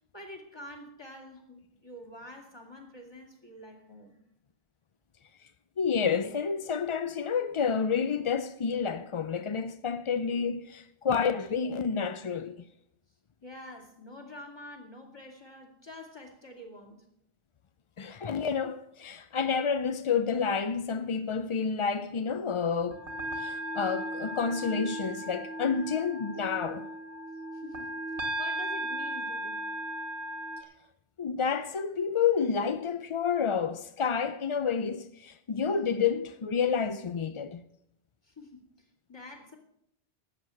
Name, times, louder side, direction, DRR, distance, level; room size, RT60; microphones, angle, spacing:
voice 1, 0.1-4.2 13.4-17.1 27.5-27.9 28.4-29.7 38.2-39.6, left 1 dB, 20° left, 2.5 m, -47 dB
voice 2, 5.8-12.6 18.0-23.1 23.4-26.9 31.2-37.6, left 6 dB, 50° left, 0.4 m, -29 dB
sound 1, 22.8-30.6, right 1 dB, 80° right, 1.9 m, -36 dB
12.5 x 8.0 x 7.6 m
omnidirectional pair, 1.1 m